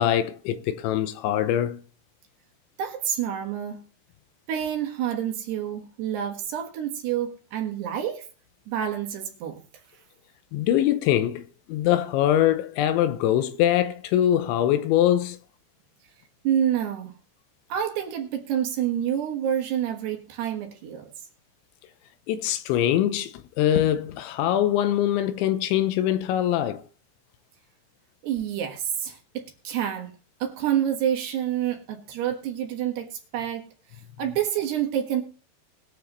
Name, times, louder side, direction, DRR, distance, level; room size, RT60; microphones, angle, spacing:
voice 1, 0.0-1.8 10.5-15.4 22.3-26.8, left 11 dB, 80° left, 3.0 m, -23 dB
voice 2, 2.8-3.8 4.5-8.3 8.7-9.6 16.4-17.1 17.7-21.1 28.2-30.1 30.4-33.7 34.2-35.2, right 10 dB, 65° right, 3.3 m, -28 dB
21.5 x 7.5 x 3.1 m
omnidirectional pair, 5.5 m